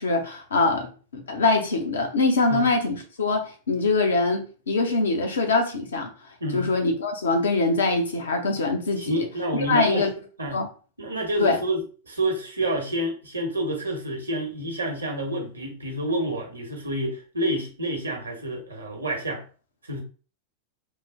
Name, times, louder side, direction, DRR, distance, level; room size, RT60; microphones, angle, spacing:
voice 1, 0.0-6.1 6.5-9.2 9.5-10.1 10.5-10.7 11.4-11.6, left 3 dB, 65° left, 0.7 m, -23 dB
voice 2, 6.4-6.7 9.0-10.1 10.4-10.6 11.0-19.4 19.8-20.0, right 1 dB, 80° right, 0.8 m, -28 dB
3.1 x 2.0 x 3.5 m
figure-of-eight pair, 90°, 0 cm